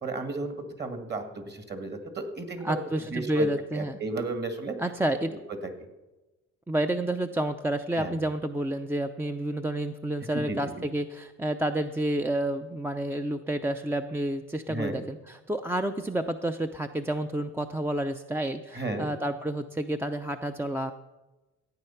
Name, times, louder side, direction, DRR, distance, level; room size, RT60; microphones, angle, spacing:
voice 1, 0.0-2.8 3.1-3.5 3.7-4.7 5.3-5.4 7.9-8.2 10.3-10.6 14.7-15.0 18.7-19.1, right 3 dB, 35° right, 7 dB, 2.0 m, -33 dB
voice 2, 2.6-4.0 4.8-5.4 6.7-20.9, right 1 dB, 10° right, 7 dB, 0.5 m, -30 dB
14.0 x 9.0 x 5.8 m, 1.1 s
cardioid pair, 90°, 30 cm